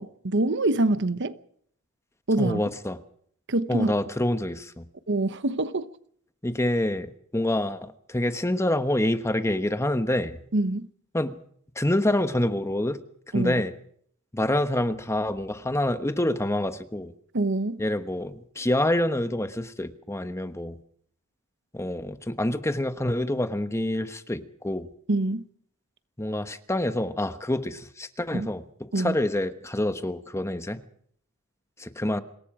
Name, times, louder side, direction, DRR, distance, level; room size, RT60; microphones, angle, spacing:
voice 1, 0.0-1.4 2.3-2.6 3.5-3.9 5.1-5.9 10.5-10.9 13.3-13.6 17.3-17.8 25.1-25.4 28.3-28.5 28.9-29.2, right 2 dB, 55° right, 1.0 m, -25 dB
voice 2, 2.4-3.0 3.7-4.8 6.4-10.4 11.1-11.4 11.7-13.0 13.3-13.7 14.3-17.1 17.8-20.8 21.7-24.9 26.2-30.8 31.8-32.2, left 1 dB, 15° left, 1.2 m, -27 dB
26.0 x 21.5 x 5.0 m
head